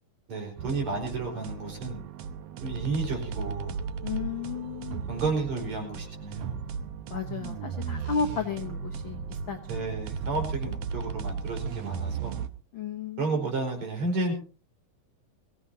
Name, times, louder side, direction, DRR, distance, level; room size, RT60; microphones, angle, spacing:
voice 1, 0.3-2.0 2.6-3.7 5.1-6.6 9.7-12.4 13.2-14.3, right 3 dB, 50° right, 1 dB, 5.9 m, -32 dB
sound 1, 0.6-12.5, right 6 dB, 80° right, 1.4 m, -35 dB
voice 2, 4.0-5.0 7.1-9.8 12.7-13.4, left 6 dB, 75° left, 5 dB, 1.1 m, -33 dB
22.5 x 17.0 x 2.8 m, 0.36 s
omnidirectional pair, 4.1 m